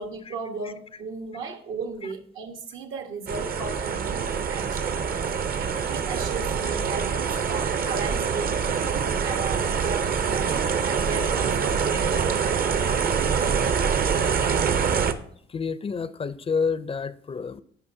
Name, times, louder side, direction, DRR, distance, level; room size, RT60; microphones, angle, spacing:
voice 1, 0.0-5.0 5.6-12.5, right 4 dB, 80° right, 1.3 m, -36 dB
sound 1, 3.3-15.1, right 6 dB, 50° right, 0.6 m, -25 dB
voice 2, 15.5-17.6, left 5 dB, 30° left, 0.4 m, -29 dB
14.0 x 5.5 x 2.7 m
cardioid pair, 90°, 20 cm